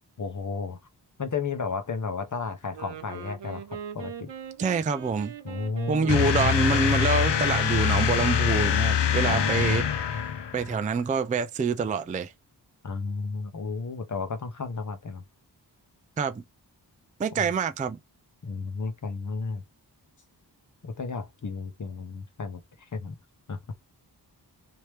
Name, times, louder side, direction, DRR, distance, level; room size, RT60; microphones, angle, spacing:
voice 1, 0.2-0.8 1.2-4.3 5.4-6.5 9.3-9.9 12.8-15.2 17.4-17.5 18.4-19.6 20.8-22.6 22.9-23.2 23.5-23.6, left 4 dB, 45° left, 0.8 m, -33 dB
Wind instrument woodwind instrument, 2.6-7.9, right 8 dB, 80° right, 0.7 m, -40 dB
voice 2, 4.6-5.3 5.9-9.8 10.5-12.3 16.2-16.4 17.2-18.0, right 5 dB, 20° right, 0.3 m, -26 dB
sound 1, 6.1-10.8, left 8 dB, 85° left, 0.6 m, -24 dB
3.1 x 2.8 x 3.2 m
wide cardioid pair, 70°, 42 cm